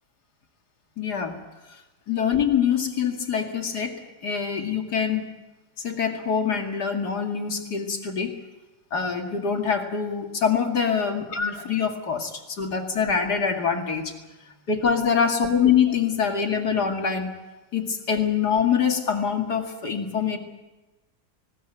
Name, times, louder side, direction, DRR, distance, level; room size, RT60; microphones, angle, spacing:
voice 1, 1.0-1.4 2.1-5.3 5.8-8.4 8.9-14.1 14.7-17.3 17.7-20.4, left 7 dB, 75° left, 3 dB, 2.8 m, -24 dB
20.0 x 18.5 x 9.1 m, 1.1 s
omnidirectional pair, 1.7 m